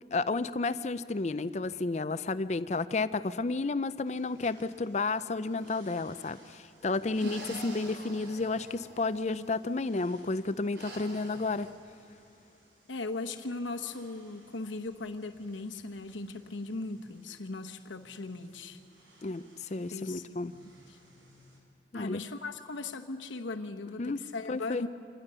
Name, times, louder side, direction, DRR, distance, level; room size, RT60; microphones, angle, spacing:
voice 1, 0.1-11.7 19.2-20.5 21.9-22.2 24.0-24.2 24.5-24.8, left 3 dB, 35° left, 14 dB, 0.5 m, -32 dB
sound 1, 4.1-21.6, right 1 dB, 90° right, 5.4 m, -62 dB
sound 2, 5.5-6.1 7.1-9.6 10.7-11.7, right 1 dB, 70° right, 4.0 m, -47 dB
voice 2, 7.2-7.6 12.9-18.8 19.9-20.4 20.9-21.0 21.9-24.9, left 3 dB, 80° left, 5 dB, 1.0 m, -38 dB
26.0 x 19.5 x 6.8 m, 2.5 s
head